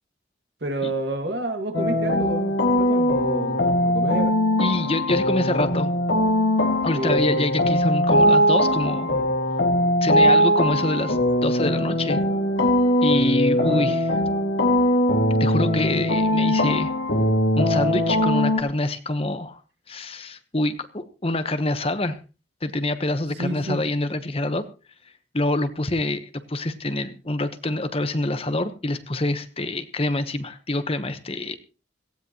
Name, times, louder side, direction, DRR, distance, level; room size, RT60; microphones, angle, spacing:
voice 1, 0.6-4.4 6.9-7.4 13.6-14.0 23.4-23.8, right 1 dB, 65° right, 2.2 m, -30 dB
sound 1, 1.7-18.6, equal, 80° left, 2.2 m, -21 dB
voice 2, 4.6-5.9 6.8-9.2 10.0-12.2 13.0-14.1 15.4-16.9 17.5-19.6 19.9-22.2 22.6-24.6 25.3-31.6, left 2 dB, 30° left, 1.0 m, -26 dB
18.0 x 16.0 x 3.0 m
head